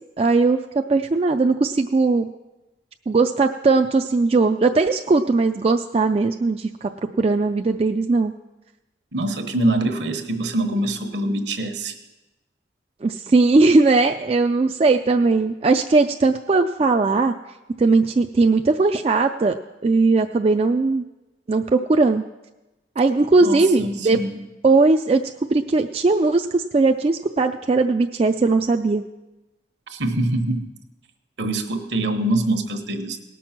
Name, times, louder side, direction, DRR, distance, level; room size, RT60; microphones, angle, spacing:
voice 1, 0.2-0.6 0.9-2.3 3.1-6.9 7.2-8.3 13.0-17.3 17.8-19.5 19.8-21.0 21.5-22.2 23.0-24.2 24.6-25.2 25.5-29.0, right 3 dB, 30° right, 5 dB, 0.3 m, -19 dB
voice 2, 9.1-12.0 23.4-24.4 29.9-30.7 31.4-33.2, right 1 dB, 70° right, 6 dB, 1.1 m, -24 dB
18.5 x 6.2 x 5.9 m, 1.0 s
head